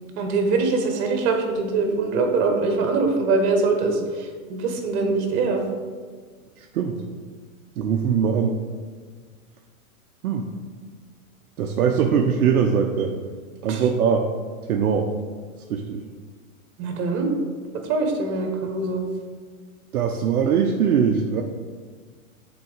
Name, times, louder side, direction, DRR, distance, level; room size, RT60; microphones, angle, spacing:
voice 1, 0.2-4.0 4.5-5.6 13.7-13.8 16.8-17.3 17.9-19.0, right 3 dB, 50° right, 4 dB, 1.4 m, -23 dB
voice 2, 6.6-7.0 7.8-8.6 10.2-10.5 11.6-13.1 13.6-14.3 14.7-15.1 15.7-16.0 19.9-21.4, right 7 dB, 80° right, 3 dB, 0.7 m, -21 dB
5.8 x 4.0 x 5.1 m, 1.5 s
hypercardioid pair, 120°, 44 cm